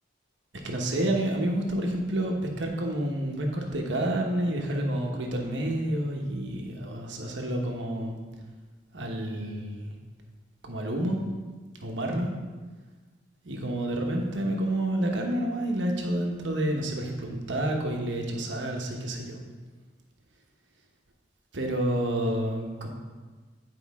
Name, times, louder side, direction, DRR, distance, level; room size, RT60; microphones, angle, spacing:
voice 1, 0.6-8.1 8.9-9.9 10.6-11.2 11.8-12.3 13.4-19.4 21.5-22.9, right 1 dB, 75° right, 1 dB, 1.1 m, -29 dB
9.5 x 4.8 x 3.5 m, 1.3 s
head